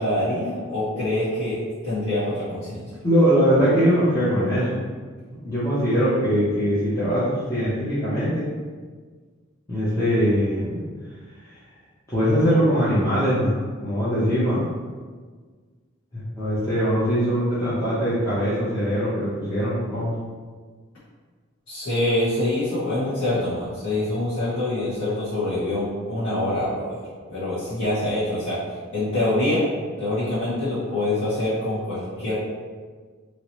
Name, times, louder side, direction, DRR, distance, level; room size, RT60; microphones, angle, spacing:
voice 1, 0.0-2.9 21.7-27.0 27.3-28.6 28.9-29.6 30.0-32.4, left 1 dB, 70° left, -14 dB, 1.3 m, -25 dB
voice 2, 3.0-4.8 5.4-8.5 9.7-10.8 11.5-11.6 12.1-13.5 13.8-14.7 16.1-20.1, equal, 15° left, -12 dB, 0.6 m, -21 dB
2.9 x 2.8 x 3.0 m, 1.5 s
head